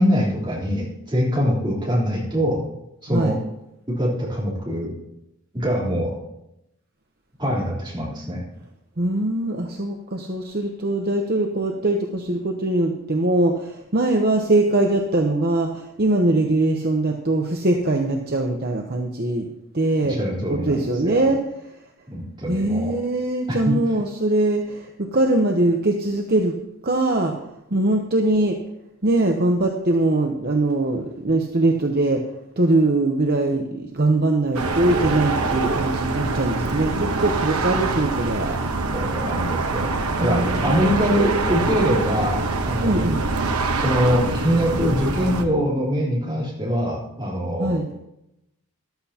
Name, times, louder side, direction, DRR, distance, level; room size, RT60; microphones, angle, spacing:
voice 1, 0.0-2.6 3.0-3.4 3.9-4.9 5.5-6.2 7.4-8.4 20.2-21.2 22.1-22.9 23.5-23.7 38.9-39.9 40.2-43.0 43.7-47.8, equal, 20° right, -5 dB, 3.5 m, -23 dB
voice 2, 9.0-19.5 19.7-20.2 20.5-21.7 22.5-26.6 26.8-27.4 27.7-28.6 29.0-32.2 32.6-38.6 40.2-41.2 42.8-43.2 47.6-47.9, right 2 dB, 45° right, 2 dB, 0.8 m, -22 dB
sound 1, 34.5-45.4, right 3 dB, 85° right, 1.0 m, -24 dB
13.5 x 12.0 x 2.9 m, 0.86 s
head